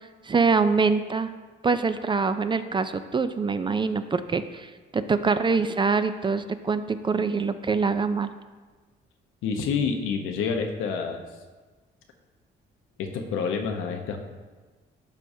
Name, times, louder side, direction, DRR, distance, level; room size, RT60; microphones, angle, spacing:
voice 1, 0.2-1.3 1.6-8.3, right 4 dB, 25° right, 11 dB, 0.4 m, -24 dB
voice 2, 9.4-11.2 13.0-14.2, left 5 dB, 90° left, 4 dB, 0.9 m, -28 dB
12.0 x 4.8 x 2.7 m, 1.3 s
cardioid pair, 90°, 20 cm